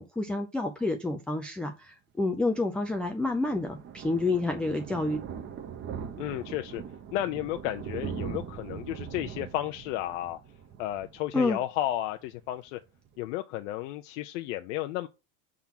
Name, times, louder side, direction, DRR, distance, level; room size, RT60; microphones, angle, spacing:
voice 1, 0.0-5.2 11.3-11.6, left 2 dB, 5° left, 0.3 m, -29 dB
Thunder, 2.5-11.9 12.2-12.5 12.8-12.9 13.1-13.2, right 7 dB, 30° right, 0.8 m, -41 dB
voice 2, 6.2-6.8 7.1-10.4 10.8-12.8 13.2-15.1, left 13 dB, 75° left, 0.6 m, -33 dB
5.8 x 3.7 x 5.7 m
supercardioid pair, 145°, 37 cm